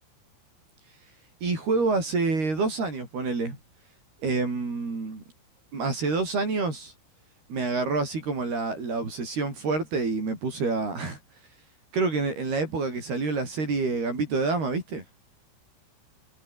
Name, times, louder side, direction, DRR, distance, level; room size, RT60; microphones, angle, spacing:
voice 1, 1.4-3.6 4.2-5.2 5.7-6.9 7.5-11.2 11.9-15.0, right 3 dB, 50° right, 9.4 m, -27 dB
omnidirectional pair, 5.7 m